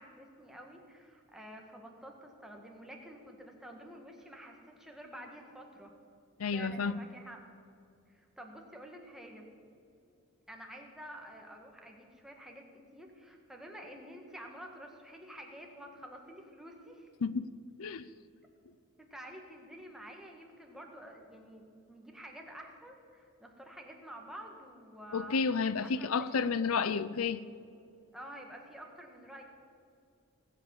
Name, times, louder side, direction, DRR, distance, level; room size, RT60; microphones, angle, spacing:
voice 1, 0.0-5.9 6.5-7.4 8.1-9.5 10.5-12.6 12.9-17.1 19.0-25.4 25.8-26.4 28.1-29.4, right 1 dB, ahead, 1 dB, 1.8 m, -49 dB
voice 2, 6.4-7.0 17.2-17.5 17.8-18.1 25.1-27.4, left 5 dB, 85° left, 16 dB, 0.5 m, -31 dB
19.0 x 8.5 x 7.2 m, 2.5 s
head